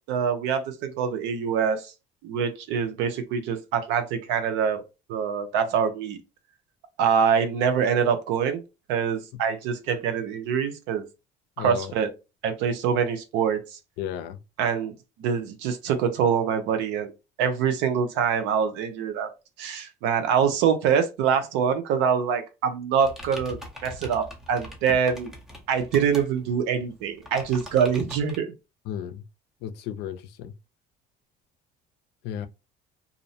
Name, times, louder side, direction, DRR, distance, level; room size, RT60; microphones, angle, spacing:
voice 1, 0.1-1.9 2.2-4.8 5.1-6.2 7.0-8.6 8.9-11.1 11.6-12.1 12.4-13.6 14.6-14.9 15.2-17.1 17.4-19.3 19.6-25.3 25.7-28.5, right 7 dB, 85° right, 0.7 m, -25 dB
voice 2, 11.6-11.9 14.0-14.4 28.9-29.2 29.6-30.5 32.2-32.5, left 10 dB, 75° left, 0.5 m, -33 dB
sound 1, 23.0-28.4, left 1 dB, 5° right, 0.6 m, -42 dB
2.5 x 2.1 x 2.6 m
cardioid pair, 135°, 17 cm